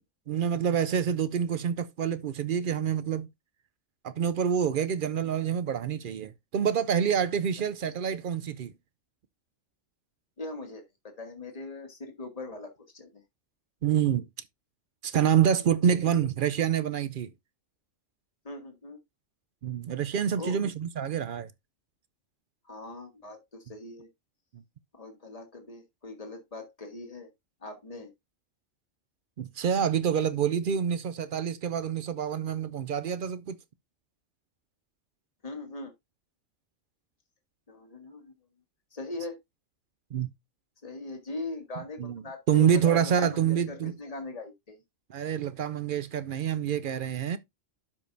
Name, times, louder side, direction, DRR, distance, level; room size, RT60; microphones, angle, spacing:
voice 1, 0.3-3.3 4.0-8.7 13.8-14.2 15.0-17.3 19.6-21.5 24.5-24.6 29.4-33.6 40.1-40.3 42.0-43.9 45.1-47.4, right 8 dB, 60° right, 0.6 m, -27 dB
voice 2, 10.4-13.2 18.4-19.0 20.4-20.6 22.7-24.1 24.9-27.3 27.6-28.1 35.4-35.9 37.7-38.3 38.9-39.4 40.8-44.8, left 2 dB, 30° left, 1.6 m, -40 dB
12.0 x 5.1 x 2.6 m
omnidirectional pair, 1.3 m